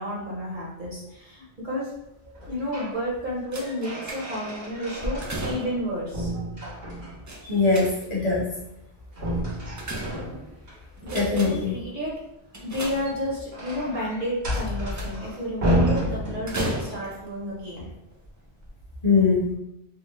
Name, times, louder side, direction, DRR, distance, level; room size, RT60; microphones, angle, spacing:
voice 1, 0.0-1.9 2.5-6.3 11.0-12.2 12.6-17.9, equal, 50° right, -5 dB, 1.1 m, -31 dB
sound 1, 2.3-3.0 3.4-5.8 6.1-7.3 9.1-10.8 12.8-16.9, equal, 75° right, 1.5 m, -30 dB
sound 2, 3.5-4.6 5.0-6.0 7.3-8.3 9.3-10.6 11.0-11.8 12.5-13.5 14.5-15.3 16.5-17.3 18.1-18.3 18.6-18.7, right 1 dB, 30° right, 0.3 m, -34 dB
voice 2, 7.4-8.4 11.1-11.7 19.0-19.5, left 4 dB, 40° left, -6 dB, 1.2 m, -21 dB
3.7 x 2.1 x 3.0 m, 0.83 s
omnidirectional pair, 1.1 m